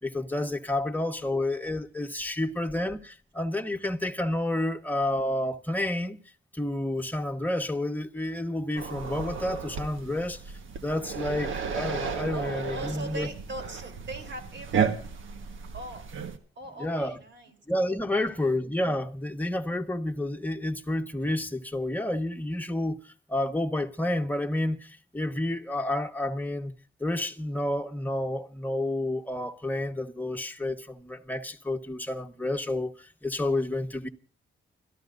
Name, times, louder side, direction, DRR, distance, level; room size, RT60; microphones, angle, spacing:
voice 1, 0.0-6.2 6.5-10.4 10.8-13.3 16.8-17.2 17.7-26.7 27.0-34.1, left 1 dB, 10° left, 1.3 m, -30 dB
sound 1, 8.7-16.4, right 6 dB, 80° right, 1.4 m, -33 dB
voice 2, 12.3-14.9 15.7-16.0 16.5-17.6 18.3-18.5, right 2 dB, 65° right, 3.5 m, -40 dB
29.5 x 13.5 x 2.6 m
cardioid pair, 90°, 20 cm